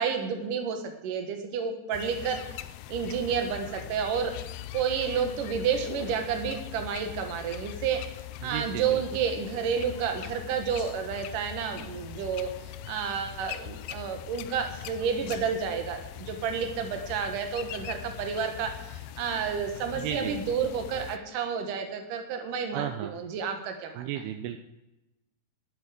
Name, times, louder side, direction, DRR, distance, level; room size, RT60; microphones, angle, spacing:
voice 1, 0.0-2.4 2.9-4.3 4.7-8.0 8.4-12.5 12.9-24.1, right 6 dB, 60° right, 5 dB, 2.8 m, -30 dB
sound 1, 1.9-21.2, left 12 dB, 85° left, 2.1 m, -41 dB
voice 2, 8.4-9.0 19.9-20.4 22.7-23.1 24.0-24.6, right 10 dB, 80° right, 8 dB, 2.6 m, -34 dB
12.0 x 11.0 x 5.1 m, 0.95 s
omnidirectional pair, 4.7 m